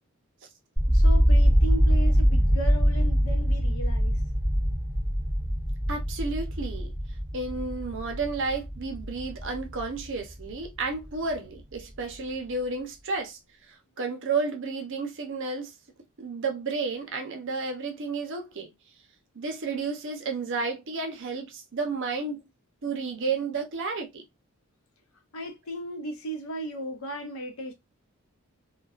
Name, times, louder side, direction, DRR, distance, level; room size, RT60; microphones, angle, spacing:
sound 1, 0.8-10.7 11.0-11.8, equal, 5° left, 1.1 m, -24 dB
voice 1, 0.9-4.2 25.3-27.7, right 1 dB, 65° left, 0.7 m, -36 dB
voice 2, 5.9-6.9 7.3-13.4 13.7-15.7 16.2-18.7 19.3-22.4 22.8-24.2, right 4 dB, 55° right, 0.6 m, -32 dB
2.3 x 2.2 x 2.3 m
head